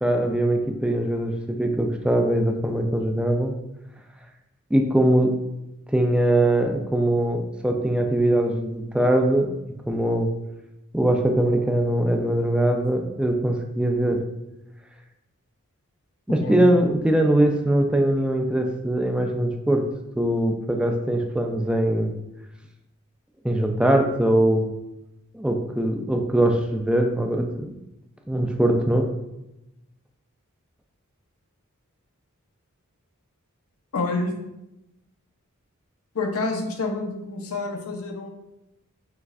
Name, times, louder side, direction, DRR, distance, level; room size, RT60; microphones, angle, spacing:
voice 1, 0.0-3.5 4.7-5.3 5.9-9.5 9.9-10.3 10.9-14.2 16.3-19.9 20.2-22.1 23.4-24.7 25.3-27.7 28.3-29.1, right 1 dB, 5° right, 3 dB, 0.3 m, -22 dB
voice 2, 33.9-34.3 36.1-38.3, left 3 dB, 80° left, 3 dB, 0.7 m, -28 dB
5.8 x 3.1 x 2.5 m, 0.92 s
head